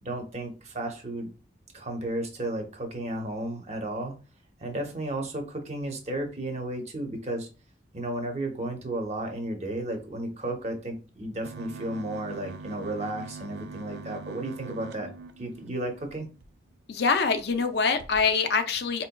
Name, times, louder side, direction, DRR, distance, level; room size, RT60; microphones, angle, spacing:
voice 1, 0.0-1.3 1.7-4.2 4.6-7.5 7.9-15.1 15.4-16.3, right 1 dB, 35° right, 3 dB, 0.8 m, -33 dB
sound 1, 11.4-16.5 17.0-17.1 17.4-17.6 18.0-18.3, right 4 dB, 65° right, 0.4 m, -43 dB
voice 2, 16.9-19.1, left 5 dB, 65° left, 8 dB, 0.5 m, -24 dB
4.4 x 2.8 x 2.2 m, 0.33 s
head